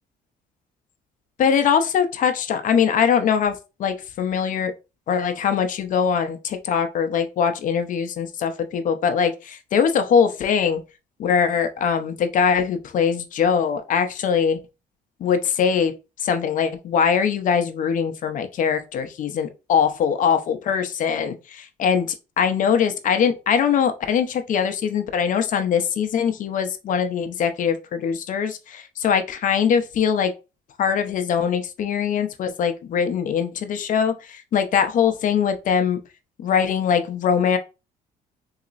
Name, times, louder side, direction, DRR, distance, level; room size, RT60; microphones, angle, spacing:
voice 1, 1.4-4.7 5.1-10.8 11.2-14.6 15.2-15.9 16.2-22.1 22.4-30.3 30.8-36.0 36.4-37.6, left 7 dB, 50° left, 0.6 m, -22 dB
4.0 x 2.8 x 2.5 m
cardioid pair, 110°, 17 cm